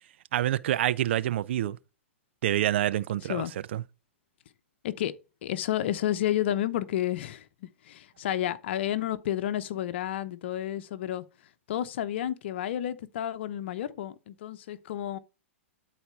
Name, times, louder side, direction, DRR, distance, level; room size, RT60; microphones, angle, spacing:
voice 1, 0.3-1.8 2.4-3.4 3.7-3.8, right 12 dB, 60° right, 0.6 m, -27 dB
voice 2, 5.4-7.5 7.8-11.2 11.7-15.2, left 11 dB, 60° left, 1.0 m, -31 dB
12.5 x 4.3 x 4.6 m
hypercardioid pair, 110°, 7 cm